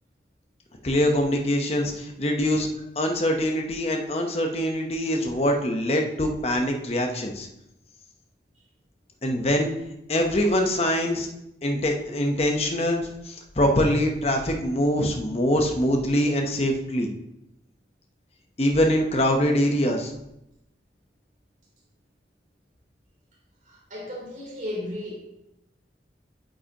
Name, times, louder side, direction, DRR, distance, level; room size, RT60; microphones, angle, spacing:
voice 1, 0.8-2.7 3.0-7.5 9.2-9.7 10.1-11.3 11.6-17.1 18.6-20.1, equal, 35° left, 3 dB, 0.9 m, -24 dB
voice 2, 23.7-25.2, left 1 dB, 45° right, -5 dB, 3.4 m, -34 dB
8.8 x 7.8 x 2.9 m, 0.83 s
head